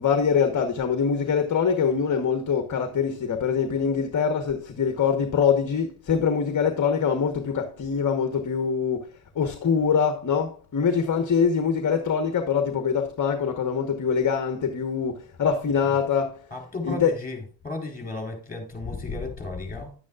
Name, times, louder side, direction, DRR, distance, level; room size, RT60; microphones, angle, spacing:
voice 1, 0.0-9.1 9.3-16.5 16.8-17.1, left 6 dB, 40° left, 1.2 m, -24 dB
voice 2, 16.5-19.9, left 2 dB, 15° left, 4.1 m, -35 dB
11.0 x 9.3 x 2.4 m
cardioid pair, 135°, 49 cm